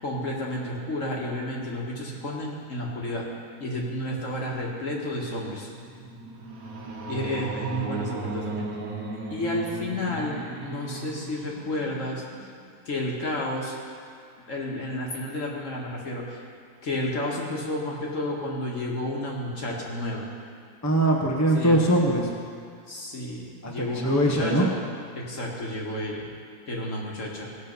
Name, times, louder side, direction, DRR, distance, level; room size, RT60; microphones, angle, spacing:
voice 1, 0.0-3.3 3.6-5.7 7.1-8.7 9.3-10.4 10.6-12.2 12.9-13.7 14.5-16.4 16.8-20.3 21.5-21.8 22.9-24.7 25.1-26.3 26.7-27.5, left 1 dB, 50° left, -2 dB, 2.1 m, -31 dB
sound 1, 5.6-12.8, right 3 dB, 60° right, 1.6 m, -36 dB
voice 2, 20.8-22.3 23.6-24.7, right 1 dB, 10° left, -1 dB, 1.1 m, -22 dB
17.5 x 6.6 x 5.5 m, 2.4 s
omnidirectional pair, 1.7 m